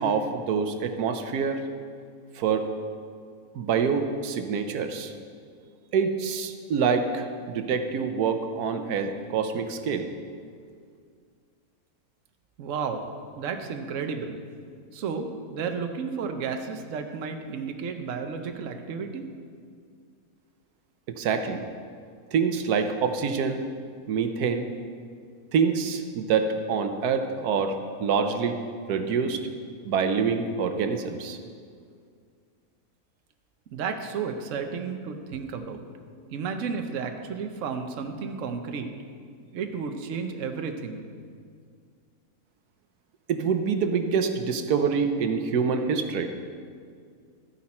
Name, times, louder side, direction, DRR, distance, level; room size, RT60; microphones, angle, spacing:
voice 1, 0.0-1.6 2.4-2.7 3.5-5.1 5.9-10.1 21.2-21.6 22.3-23.6 24.1-24.7 25.5-28.6 28.9-29.4 29.9-31.4 43.3-46.3, right 6 dB, 85° right, 7 dB, 1.3 m, -26 dB
voice 2, 12.6-13.0 13.4-14.4 14.9-19.2 33.7-35.8 36.3-38.9 39.5-41.0, right 5 dB, 60° right, 5 dB, 1.1 m, -32 dB
13.0 x 10.0 x 4.3 m, 2.1 s
omnidirectional pair, 1.6 m